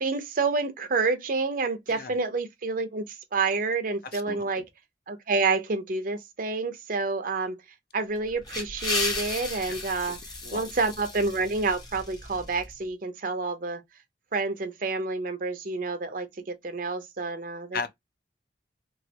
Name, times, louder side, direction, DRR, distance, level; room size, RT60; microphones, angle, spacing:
voice 1, 0.0-4.7 5.1-7.6 7.9-10.2 10.5-13.8 14.3-17.9, right 3 dB, 50° right, 0.6 m, -28 dB
voice 2, 4.1-4.6 10.4-10.6 17.7-17.9, left 5 dB, 55° left, 0.5 m, -35 dB
sound 1, 8.2-12.7, left 2 dB, 25° left, 0.9 m, -34 dB
3.1 x 2.4 x 2.8 m
head